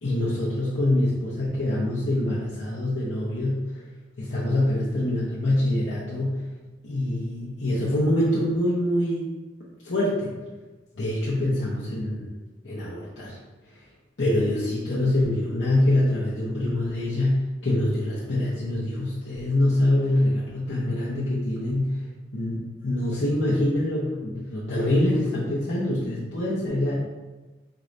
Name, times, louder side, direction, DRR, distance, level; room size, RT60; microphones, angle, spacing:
voice 1, 0.0-3.8 4.2-6.4 6.8-9.3 9.8-10.3 10.9-12.3 12.6-13.4 14.2-22.0 22.3-26.9, left 1 dB, 80° left, -9 dB, 0.9 m, -25 dB
4.7 x 2.5 x 3.1 m, 1.2 s
head